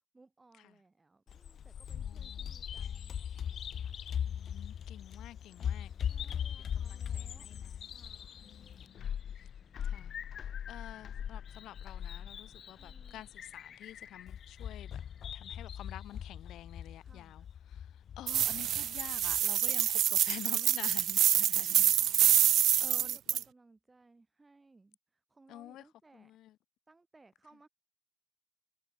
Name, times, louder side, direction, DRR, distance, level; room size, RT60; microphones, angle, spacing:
voice 1, 0.1-4.1 6.0-7.5 7.8-8.4 12.8-13.3 17.0-17.5 21.5-22.3 22.9-26.3 26.9-27.7, right 3 dB, 15° right, 6.4 m, -63 dB
Bird vocalization bird call bird song, 1.3-19.4, left 9 dB, 50° left, 0.4 m, -40 dB
voice 2, 1.9-2.5 4.3-5.9 6.6-7.9 8.4-9.1 9.4-9.5 9.8-15.0 15.3-21.9 22.8-23.4 25.5-25.9 26.1-26.6, left 13 dB, 90° left, 0.8 m, -50 dB
sound 1, 3.3-15.8, left 3 dB, 20° left, 6.8 m, -67 dB
sound 2, 18.3-23.4, right 11 dB, 65° right, 0.3 m, -27 dB
cardioid pair, 155°, 0 cm